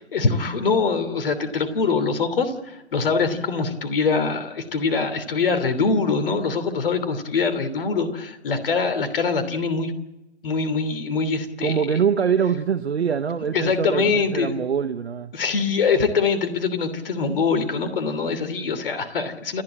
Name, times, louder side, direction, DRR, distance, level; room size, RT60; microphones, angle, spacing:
voice 1, 0.1-9.9 10.4-11.8 13.5-14.6 15.3-19.6, left 4 dB, 50° left, 10 dB, 3.1 m, -23 dB
voice 2, 11.6-15.3, right 7 dB, 65° right, 11 dB, 1.1 m, -24 dB
29.5 x 11.0 x 8.7 m, 0.96 s
figure-of-eight pair, 130°, 35 cm